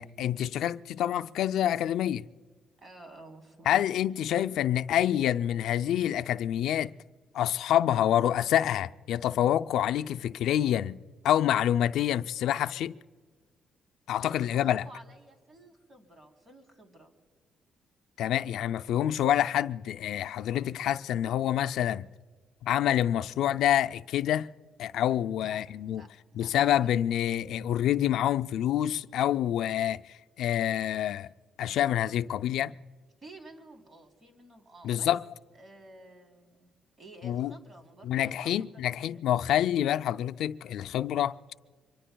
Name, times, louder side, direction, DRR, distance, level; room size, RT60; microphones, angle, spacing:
voice 1, 0.0-2.3 3.7-6.9 7.3-11.0 11.2-13.0 14.1-14.8 18.2-22.1 22.6-24.5 24.8-26.0 26.4-30.0 30.4-31.3 31.6-32.7 34.8-35.2 37.2-37.5 38.1-41.3, left 11 dB, 80° left, 0.4 m, -27 dB
voice 2, 2.8-3.8 14.2-17.1 25.4-26.5 26.8-26.9 31.0-31.3 33.2-35.1 35.5-39.1, right 2 dB, 40° right, 3.4 m, -52 dB
25.5 x 23.0 x 2.3 m
cardioid pair, 90°, 0 cm